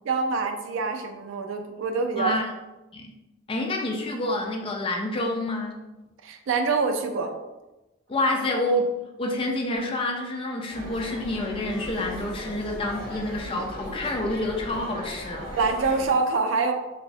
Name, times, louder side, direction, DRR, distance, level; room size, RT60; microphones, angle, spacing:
voice 1, 0.0-2.3 6.2-7.3 15.6-16.7, right 4 dB, 65° right, 5 dB, 0.3 m, -25 dB
voice 2, 2.2-2.5 2.9-3.1 3.5-5.9 8.1-8.8 9.2-15.5, left 1 dB, 25° left, 1 dB, 0.3 m, -28 dB
sound 1, 10.7-16.1, equal, 5° left, 0.9 m, -37 dB
3.0 x 2.0 x 2.6 m, 1.0 s
head